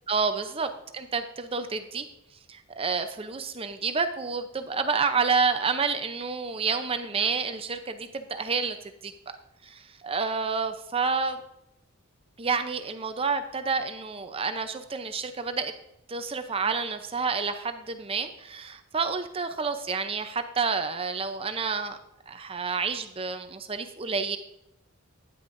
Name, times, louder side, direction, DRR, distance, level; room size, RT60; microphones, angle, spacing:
voice 1, 0.1-2.0 2.5-8.8 9.0-9.1 9.6-11.4 12.4-15.7 16.1-22.0 22.3-24.4, right 5 dB, 25° right, 8 dB, 0.6 m, -29 dB
10.0 x 9.2 x 2.6 m, 0.86 s
head